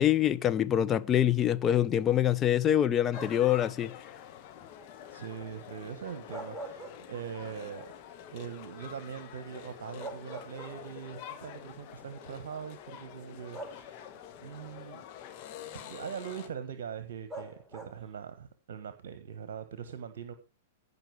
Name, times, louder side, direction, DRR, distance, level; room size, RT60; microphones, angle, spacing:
voice 1, 0.0-3.9, left 10 dB, 25° left, 0.7 m, -25 dB
sound 1, 3.1-16.5, left 10 dB, 45° left, 1.7 m, -47 dB
sound 2, 3.1-3.6 6.1-7.5 7.9-8.0 9.5-9.6 10.0-11.1 12.2-12.3 13.5-14.3 17.3-18.2, right 2 dB, 5° right, 1.5 m, -44 dB
voice 2, 5.1-7.9 8.3-14.1 14.4-15.0 15.7-20.3, right 8 dB, 65° right, 1.1 m, -42 dB
15.5 x 5.5 x 4.7 m
figure-of-eight pair, 105°, 0 cm